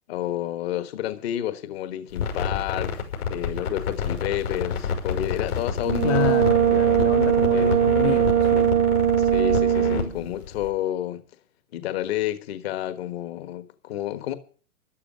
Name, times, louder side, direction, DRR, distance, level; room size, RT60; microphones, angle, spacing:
voice 1, 0.1-6.4 7.5-7.8 9.2-11.2 11.7-14.3, left 12 dB, 45° left, 1.4 m, -30 dB
sound 1, 2.1-10.7, left 6 dB, 80° left, 6.6 m, -29 dB
Brass instrument, 5.8-10.2, right 10 dB, 15° right, 0.6 m, -20 dB
voice 2, 6.0-8.7, left 12 dB, 25° left, 0.7 m, -29 dB
13.0 x 12.0 x 6.3 m
hypercardioid pair, 145°, 44 cm